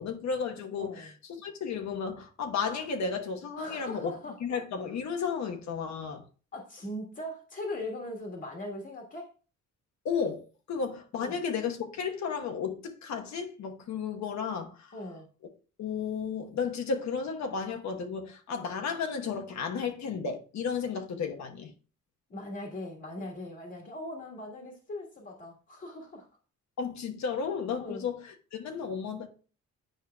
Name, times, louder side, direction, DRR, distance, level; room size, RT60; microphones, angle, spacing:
voice 1, 0.0-4.1 4.4-6.2 10.0-14.9 15.8-21.7 26.8-29.3, left 6 dB, 65° left, 1.1 m, -33 dB
voice 2, 0.8-1.1 3.6-4.4 6.5-9.3 11.2-11.4 14.9-15.3 22.3-26.2 27.8-28.0, left 1 dB, 35° left, 1.5 m, -40 dB
9.1 x 4.6 x 2.2 m
cardioid pair, 90°, 30 cm